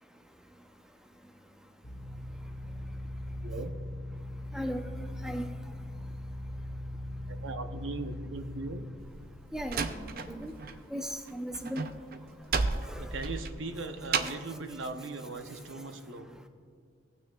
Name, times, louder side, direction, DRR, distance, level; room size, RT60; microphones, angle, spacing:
sound 1, 1.8-8.8, left 1 dB, 40° left, 1.1 m, -40 dB
voice 1, 7.3-8.8 13.0-16.3, right 3 dB, 85° right, 8 dB, 0.7 m, -39 dB
Slam, 9.0-10.8 11.1-14.5, right 4 dB, 50° right, 0.5 m, -33 dB
voice 2, 9.5-10.5 10.9-11.8 12.9-13.0, equal, 5° right, 5 dB, 0.5 m, -36 dB
17.5 x 9.1 x 2.3 m, 2.1 s
head